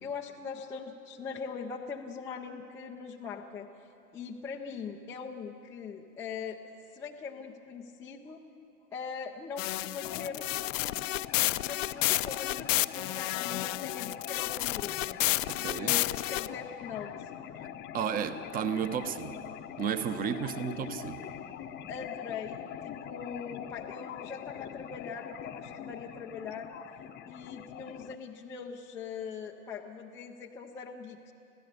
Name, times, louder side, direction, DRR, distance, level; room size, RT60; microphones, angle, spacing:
voice 1, 0.0-6.6 6.9-8.4 8.9-17.3 20.4-20.5 21.9-26.8 27.3-31.3, left 6 dB, 5° left, -1 dB, 0.4 m, -42 dB
sound 1, 9.6-16.5, left 16 dB, 55° left, 0.6 m, -31 dB
sound 2, 10.0-28.2, left 10 dB, 25° left, 0.7 m, -43 dB
voice 2, 15.5-16.0 17.9-19.4 19.8-21.3, right 7 dB, 20° right, 12 dB, 0.8 m, -33 dB
26.0 x 15.5 x 6.8 m, 2.8 s
hypercardioid pair, 115°, 45 cm